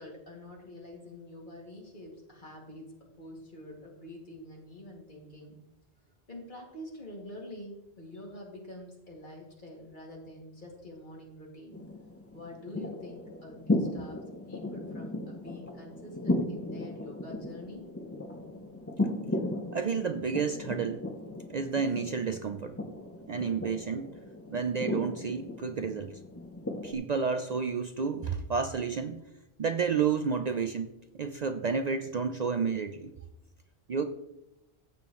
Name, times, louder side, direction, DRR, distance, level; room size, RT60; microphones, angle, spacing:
voice 1, 0.0-2.9 3.2-5.6 6.3-11.8 12.3-14.2 14.5-17.9, left 1 dB, 50° left, -2 dB, 2.6 m, -46 dB
sound 1, 11.7-26.9, left 1 dB, 15° left, 0.7 m, -36 dB
voice 2, 19.7-21.0 21.5-22.8 23.3-24.2 24.5-26.2 26.8-29.2 29.6-33.1 33.9-34.0, right 5 dB, 50° right, 7 dB, 0.6 m, -31 dB
15.5 x 7.1 x 3.1 m, 0.91 s
omnidirectional pair, 1.1 m